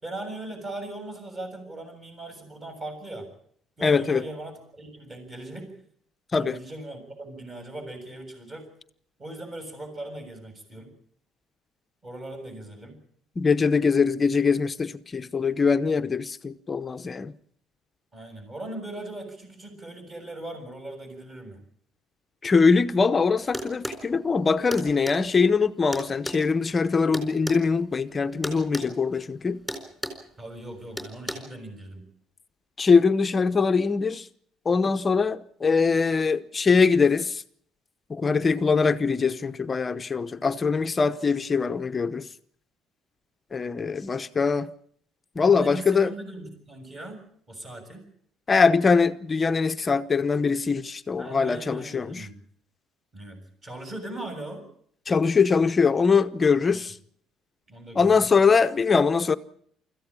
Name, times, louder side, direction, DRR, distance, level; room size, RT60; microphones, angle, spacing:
voice 1, 0.0-3.3 3.8-5.7 6.3-8.7 9.2-10.9 12.0-13.0 18.1-21.6 30.4-32.1 45.4-47.2 47.5-48.0 51.2-52.4 53.1-54.7 56.7-56.8 57.7-58.4, right 1 dB, 25° right, 7.1 m, -39 dB
voice 2, 3.8-4.2 6.3-6.6 13.4-17.3 22.4-29.6 32.8-34.2 34.7-37.4 38.1-42.3 43.5-44.7 45.4-46.1 48.5-52.3 55.1-56.9 58.0-59.4, left 5 dB, 20° left, 0.8 m, -22 dB
sound 1, 23.5-24.0 24.7-25.2 25.9-27.6 28.4-28.9 29.1-29.3 29.7-30.2 31.0-31.3, equal, ahead, 4.2 m, -33 dB
25.0 x 14.5 x 8.8 m
cardioid pair, 155°, 0 cm